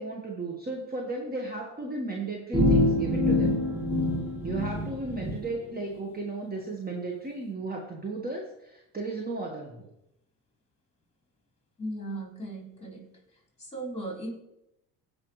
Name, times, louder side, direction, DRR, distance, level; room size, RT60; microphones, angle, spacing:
voice 1, 0.0-3.6 4.4-9.9, right 3 dB, 20° right, 0 dB, 1.5 m, -34 dB
sound 1, 2.5-5.4, left 1 dB, 5° right, 1.9 m, -25 dB
voice 2, 11.8-13.1 13.6-14.3, right 1 dB, 15° left, 0 dB, 3.8 m, -37 dB
15.5 x 5.4 x 3.2 m, 0.85 s
supercardioid pair, 75°, 42 cm